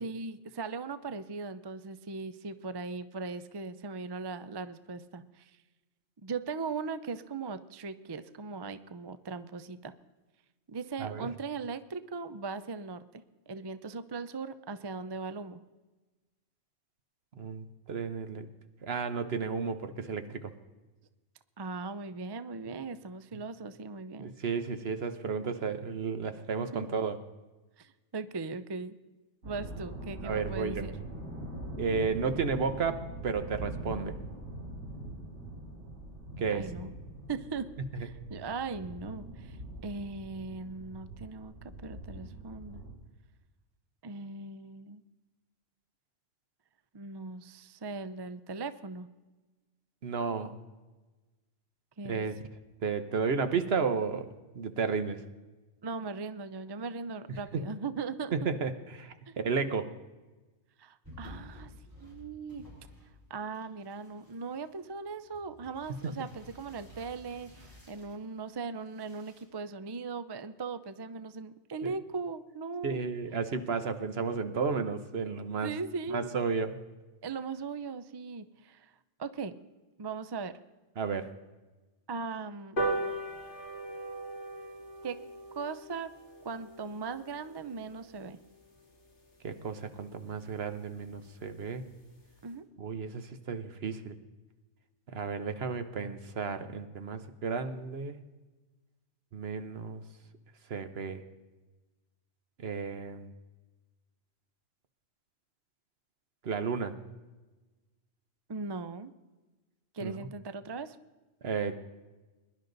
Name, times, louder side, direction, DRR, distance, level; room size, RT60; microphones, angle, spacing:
voice 1, 0.0-5.5 6.2-9.9 10.7-15.6 21.6-24.3 26.6-26.9 27.8-29.0 29.5-31.0 36.5-36.9 37.3-37.7 38.0-39.6 39.8-41.5 41.8-42.8 44.0-45.0 46.9-49.1 52.0-52.3 55.8-58.4 59.3-59.4 60.8-61.7 62.0-62.6 63.3-73.0 75.5-76.3 77.2-78.9 79.2-79.5 80.0-80.6 82.1-82.8 85.0-85.2 85.5-86.1 86.4-88.4 92.4-92.6 108.5-109.1 109.9-111.0, right 4 dB, 35° right, 13 dB, 0.4 m, -39 dB
voice 2, 17.4-18.5 18.8-20.5 24.2-27.2 30.2-30.9 31.8-34.1 36.4-36.7 37.9-38.1 50.0-50.5 52.0-52.4 52.8-54.3 54.5-55.2 58.3-59.8 71.8-71.9 72.8-75.7 76.1-76.8 81.0-81.3 89.4-91.9 92.8-94.1 95.1-98.2 99.3-100.0 100.7-101.2 102.6-103.3 106.4-106.9 110.0-110.3 111.4-111.8, right 5 dB, 60° right, 9 dB, 1.2 m, -33 dB
sound 1, 29.4-42.9, right 1 dB, 85° right, 2.9 m, -43 dB
sound 2, 61.0-63.3 63.5-68.2 68.8-69.4, left 1 dB, 15° right, 4.4 m, -53 dB
sound 3, 82.8-89.5 89.9-90.0 90.3-90.5 90.7-90.8 91.1-91.2 91.5-91.8 92.2-92.3, right 2 dB, 50° left, 2.4 m, -39 dB
21.5 x 11.5 x 3.9 m, 1.2 s
omnidirectional pair, 1.2 m